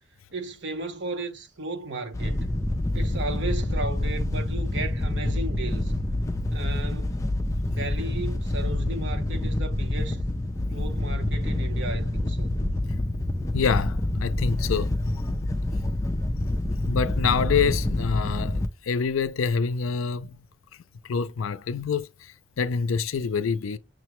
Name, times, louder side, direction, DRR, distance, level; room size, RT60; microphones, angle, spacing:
voice 1, 0.3-2.5 2.9-5.9 6.5-7.3 7.7-10.2 10.7-12.5, right 2 dB, 60° right, 0.8 m, -35 dB
Wind / Boat Water vehicle, 2.1-18.7, left 1 dB, 15° left, 0.4 m, -27 dB
voice 2, 13.5-15.0 16.4-20.4 21.0-23.8, left 5 dB, 90° left, 0.5 m, -26 dB
6.2 x 2.2 x 2.9 m
head